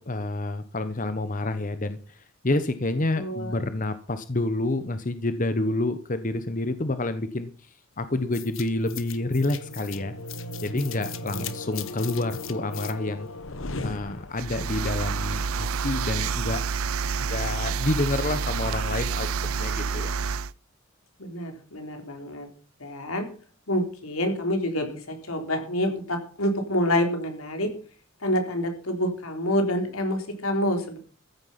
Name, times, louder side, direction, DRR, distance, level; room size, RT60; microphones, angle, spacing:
voice 1, 0.1-10.1 10.6-13.3 13.8-16.6 17.1-19.3 19.6-20.2, left 2 dB, 40° left, 11 dB, 1.0 m, -28 dB
voice 2, 3.2-3.6 11.3-11.4 21.2-22.5 22.8-23.3 23.7-27.7 28.2-31.0, equal, 90° left, 5 dB, 3.8 m, -27 dB
sound 1, 8.3-14.7, left 3 dB, 70° left, 1.3 m, -36 dB
sound 2, 14.4-20.5, right 5 dB, 85° right, 0.6 m, -28 dB
14.5 x 9.7 x 5.8 m, 0.40 s
head